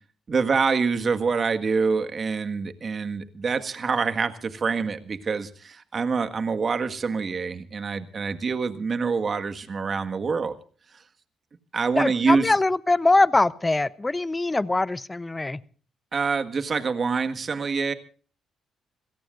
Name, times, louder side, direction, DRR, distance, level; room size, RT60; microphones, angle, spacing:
voice 1, 0.3-10.5 11.7-12.5 16.1-17.9, right 5 dB, 40° right, 8 dB, 1.7 m, -26 dB
voice 2, 11.9-15.6, left 2 dB, 20° left, 18 dB, 0.7 m, -22 dB
27.0 x 17.5 x 2.6 m, 0.41 s
cardioid pair, 90°, 0 cm